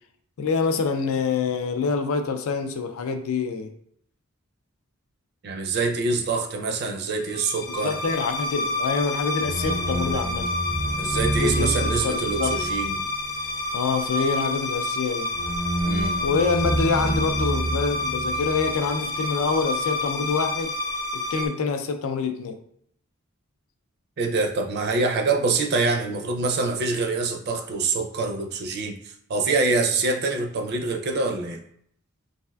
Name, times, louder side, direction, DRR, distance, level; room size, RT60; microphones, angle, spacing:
voice 1, 0.4-3.7 7.7-10.5 11.4-12.5 13.7-15.3 16.2-20.7 21.1-22.6, left 5 dB, 80° left, 7 dB, 0.4 m, -26 dB
voice 2, 5.4-8.0 11.0-13.0 15.8-16.2 24.2-29.0 29.3-31.6, right 3 dB, 50° right, 3 dB, 0.4 m, -25 dB
sound 1, 7.3-21.5, left 1 dB, 35° left, 0.7 m, -27 dB
3.3 x 2.4 x 2.2 m, 0.69 s
head